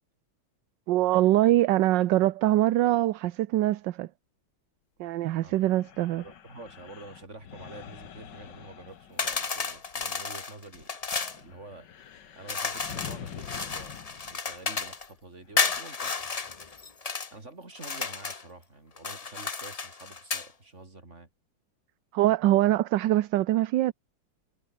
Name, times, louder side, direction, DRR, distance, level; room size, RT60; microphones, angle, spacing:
voice 1, 0.9-4.1 5.0-6.2 22.1-23.9, right 15 dB, 70° right, 1.3 m, -23 dB
voice 2, 5.4-5.7 6.2-11.0 11.3-11.9 12.3-16.1 17.3-21.3, right 2 dB, 35° right, 4.6 m, -47 dB
sound 1, 5.5-10.2 10.6-15.8, left 9 dB, 60° left, 1.9 m, -46 dB
sound 2, 9.2-11.4 12.5-15.1 15.6-17.3 17.8-18.5 19.0-20.5, left 4 dB, 35° left, 0.6 m, -32 dB
omnidirectional pair, 2.2 m